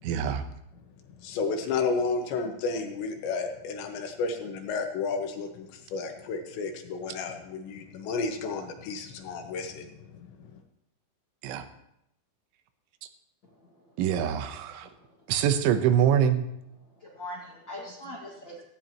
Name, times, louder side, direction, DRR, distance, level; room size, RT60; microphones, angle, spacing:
voice 1, 0.0-0.4 11.4-11.7 14.0-14.9 15.3-16.5, right 9 dB, 90° right, 8 dB, 3.4 m, -24 dB
voice 2, 1.2-10.3, left 4 dB, 75° left, 4 dB, 3.5 m, -32 dB
voice 3, 13.4-14.0 14.8-15.2 16.8-18.6, left 1 dB, 40° left, -3 dB, 1.6 m, -43 dB
17.0 x 16.0 x 3.0 m, 0.79 s
omnidirectional pair, 5.3 m